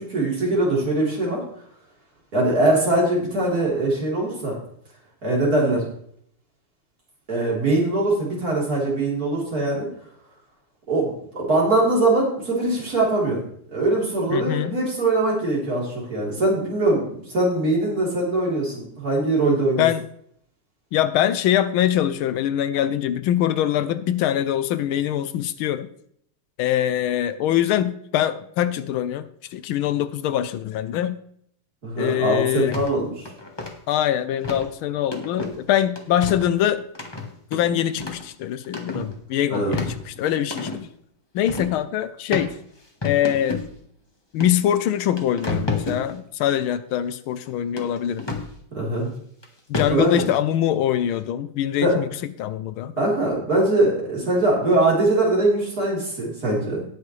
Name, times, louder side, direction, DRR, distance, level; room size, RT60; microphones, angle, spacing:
voice 1, 0.1-1.4 2.3-4.6 5.2-5.8 7.3-9.9 10.9-13.4 13.7-19.9 31.8-33.3 39.5-39.8 48.7-49.1 49.9-50.2 51.8-51.9 53.0-56.9, right 2 dB, 40° right, -4 dB, 4.1 m, -22 dB
voice 2, 14.3-14.8 19.8-20.0 20.9-25.9 26.6-31.2 32.0-32.8 33.9-36.9 37.5-40.7 41.3-42.5 43.0-43.6 44.3-48.3 49.7-52.1 52.4-52.9, left 11 dB, 75° left, 13 dB, 1.4 m, -23 dB
sound 1, 32.7-32.9 33.2-33.7 34.4-34.7 35.1-35.6 35.9-36.5 36.9-38.3 38.6-39.1 39.5-40.8 41.5-41.8 42.3-42.5 43.0-43.7 44.4-44.5 44.9-46.0 47.8-48.5 49.4-49.5 49.7-50.3, left 3 dB, 15° left, 1.0 m, -29 dB
18.5 x 6.4 x 3.2 m, 0.66 s
omnidirectional pair, 2.4 m